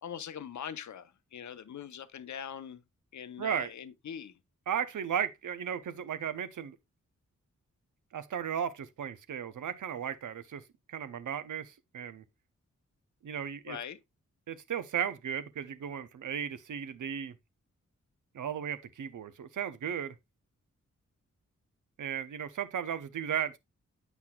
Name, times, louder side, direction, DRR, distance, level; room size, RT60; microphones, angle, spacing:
voice 1, 0.0-2.8 3.1-4.4 13.7-14.0, left 8 dB, 60° left, 0.7 m, -42 dB
voice 2, 3.4-3.7 4.7-6.8 8.1-10.6 10.9-12.2 13.2-13.8 14.5-17.3 18.3-20.2 22.0-23.6, right 8 dB, 70° right, 0.7 m, -35 dB
8.1 x 5.7 x 2.3 m
cardioid pair, 45°, 32 cm